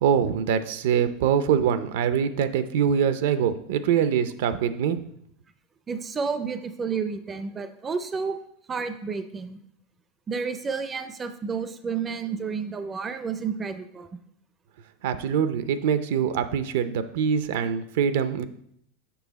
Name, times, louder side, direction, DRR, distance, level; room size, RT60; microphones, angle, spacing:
voice 1, 0.0-5.0 15.0-18.4, right 8 dB, 75° right, 12 dB, 0.5 m, -24 dB
voice 2, 5.9-8.4 8.7-9.6 10.3-14.1, right 5 dB, 20° right, 10 dB, 0.4 m, -31 dB
6.9 x 5.6 x 4.0 m, 0.71 s
supercardioid pair, 150°, 0 cm